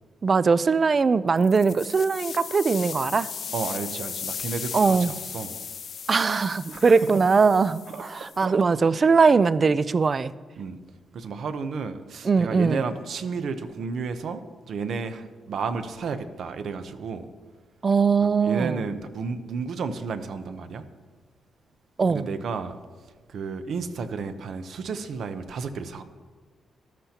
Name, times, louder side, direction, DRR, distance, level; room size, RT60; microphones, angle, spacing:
voice 1, 0.2-3.3 4.7-5.1 6.1-7.8 8.4-10.3 12.3-12.8 17.8-18.7 22.0-22.2, right 5 dB, 35° right, 0.3 m, -20 dB
sound 1, 1.4-8.5, left 7 dB, 55° left, 0.4 m, -37 dB
voice 2, 3.5-5.6 6.7-7.2 7.9-8.1 8.3-8.6 10.6-10.8 11.1-17.3 18.4-20.9 22.1-22.8 23.3-26.0, right 5 dB, 65° right, 0.7 m, -32 dB
13.5 x 12.0 x 2.9 m
cardioid pair, 130°, 0 cm